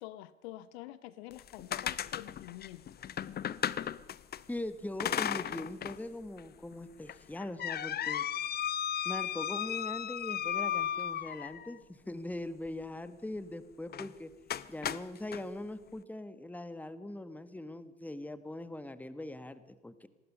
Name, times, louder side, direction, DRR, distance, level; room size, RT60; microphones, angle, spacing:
voice 1, 0.0-2.8, left 15 dB, 60° left, 17 dB, 1.0 m, -47 dB
sound 1, 1.3-4.4 5.0-6.0 6.4-6.5 7.1-11.8 13.9-14.1 14.5-15.4, left 9 dB, 25° left, 0.8 m, -35 dB
voice 2, 4.5-8.2 9.0-14.3 14.7-20.1, left 1 dB, 5° left, 14 dB, 1.3 m, -41 dB
27.0 x 19.5 x 5.5 m, 1.1 s
figure-of-eight pair, 70°, 36 cm